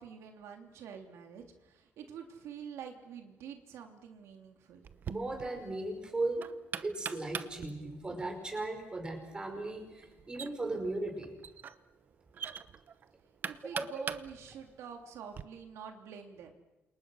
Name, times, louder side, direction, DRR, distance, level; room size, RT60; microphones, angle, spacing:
voice 1, 0.0-4.9 13.4-16.5, right 7 dB, 75° right, 4 dB, 3.1 m, -47 dB
Knock, 4.8-15.4, right 7 dB, 45° right, 0.9 m, -45 dB
voice 2, 5.1-6.4 6.8-11.3 13.7-14.0, right 2 dB, 20° right, 4 dB, 5.7 m, -37 dB
29.5 x 27.5 x 6.5 m, 1.0 s
cardioid pair, 150°, 5 cm